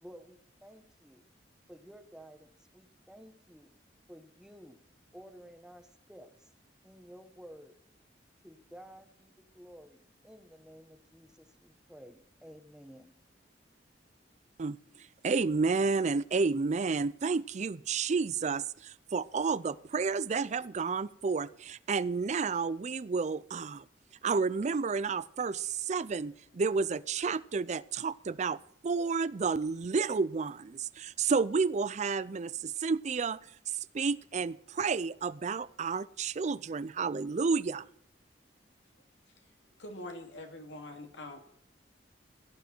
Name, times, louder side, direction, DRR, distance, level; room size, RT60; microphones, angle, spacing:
voice 1, 0.0-1.3 1.7-3.7 4.1-4.8 5.1-6.5 6.8-7.7 8.4-13.1, equal, 5° right, 8 dB, 1.2 m, -53 dB
voice 2, 15.2-23.8 24.2-33.4 33.9-37.8, right 4 dB, 40° right, 18 dB, 0.4 m, -31 dB
voice 3, 39.8-41.4, left 1 dB, 85° left, 4 dB, 2.8 m, -44 dB
17.0 x 11.5 x 4.5 m, 0.69 s
head